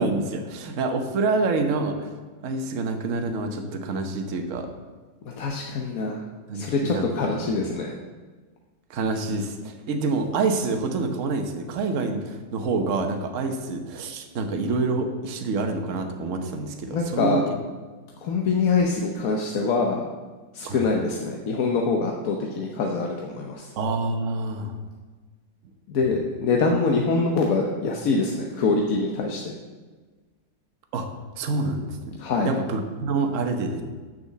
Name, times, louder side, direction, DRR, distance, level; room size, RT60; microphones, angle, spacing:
voice 1, 0.0-2.1 2.4-4.7 6.5-7.5 8.9-17.4 20.6-20.8 23.8-24.7 30.9-31.1 31.4-32.2 32.4-33.8, right 3 dB, 50° right, 5 dB, 1.2 m, -27 dB
voice 2, 5.3-6.2 6.5-8.0 16.9-17.4 18.2-20.0 20.5-23.7 25.9-29.5 32.2-32.5, left 4 dB, 60° left, 1 dB, 1.1 m, -24 dB
6.8 x 6.8 x 7.3 m, 1.4 s
omnidirectional pair, 2.0 m